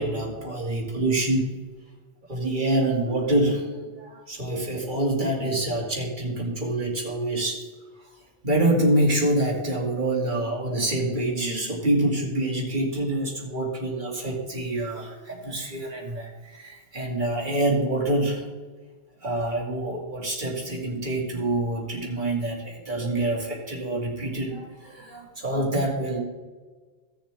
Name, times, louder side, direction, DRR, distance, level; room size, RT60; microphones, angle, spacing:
voice 1, 0.0-1.5 2.3-7.6 8.4-18.4 19.2-26.2, right 1 dB, 50° right, -1 dB, 2.3 m, -26 dB
16.5 x 7.1 x 3.4 m, 1.4 s
omnidirectional pair, 1.0 m